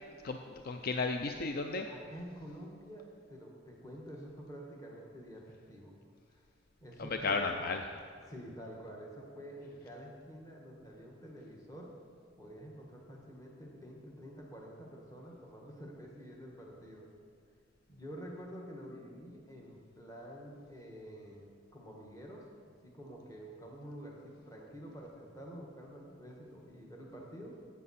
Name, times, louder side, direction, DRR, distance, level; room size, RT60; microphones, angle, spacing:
voice 1, 0.2-1.9 7.0-7.8, left 4 dB, 55° left, 5 dB, 0.5 m, -34 dB
voice 2, 1.9-5.9 6.3-6.4 6.8-7.5 8.3-11.9 12.4-17.1 17.9-27.6, equal, 20° left, -2 dB, 1.4 m, -48 dB
12.5 x 8.4 x 4.2 m, 2.2 s
head